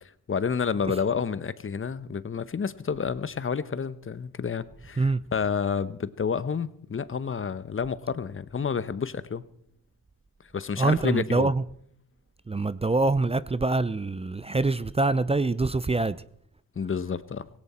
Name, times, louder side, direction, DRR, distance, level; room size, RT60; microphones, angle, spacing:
voice 1, 0.3-9.4 10.5-11.5 16.8-17.5, left 6 dB, 35° left, 1.0 m, -29 dB
voice 2, 10.8-11.6 12.5-16.2, right 3 dB, 15° right, 0.6 m, -25 dB
17.5 x 17.0 x 4.4 m
cardioid pair, 65°, 37 cm